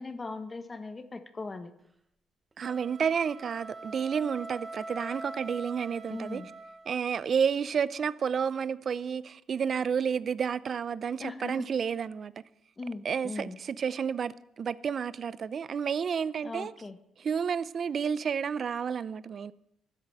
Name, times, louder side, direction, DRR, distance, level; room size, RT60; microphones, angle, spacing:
voice 1, 0.0-1.7 6.1-6.5 11.2-11.6 12.8-13.6 16.4-17.0, left 3 dB, 25° left, 1.4 m, -39 dB
sound 1, 2.5-7.1, right 2 dB, 25° right, 1.2 m, -43 dB
voice 2, 2.6-6.4 6.9-12.3 13.0-16.7 17.2-19.5, right 7 dB, 50° right, 0.6 m, -30 dB
12.5 x 10.5 x 7.7 m
cardioid pair, 90°, 0 cm